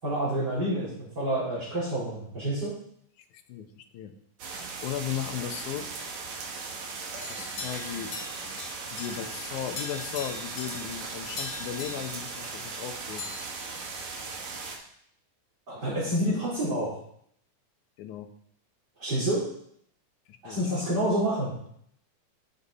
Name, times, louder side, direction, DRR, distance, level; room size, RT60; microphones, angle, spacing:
voice 1, 0.0-2.7 15.7-16.9 19.0-19.4 20.4-21.5, right 1 dB, 30° right, -11 dB, 4.2 m, -28 dB
voice 2, 3.5-4.1 4.8-5.9 7.3-8.1 8.9-13.3 16.0-16.4 18.0-18.3 20.3-20.6 20.9-21.0, left 10 dB, 80° left, 7 dB, 2.3 m, -36 dB
sound 1, 4.4-14.8, right 4 dB, 65° right, 2.7 m, -38 dB
sound 2, 6.0-6.8 7.2-12.9 13.2-14.6, left 4 dB, 60° left, 1.2 m, -42 dB
12.5 x 7.0 x 4.1 m, 0.68 s
omnidirectional pair, 3.5 m